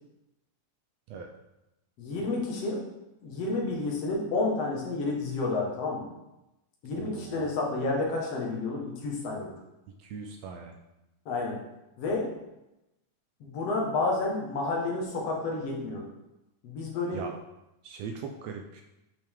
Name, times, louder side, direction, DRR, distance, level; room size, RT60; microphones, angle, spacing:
voice 1, 2.0-2.8 3.2-6.0 6.8-9.5 11.3-11.6 12.0-12.3 13.4-16.1 16.6-17.2, left 3 dB, 55° left, -1 dB, 2.3 m, -30 dB
voice 2, 6.9-7.5 10.0-10.8 17.1-17.4 17.8-18.8, right 5 dB, 80° right, 4 dB, 1.5 m, -40 dB
8.6 x 5.8 x 3.6 m, 0.92 s
omnidirectional pair, 3.6 m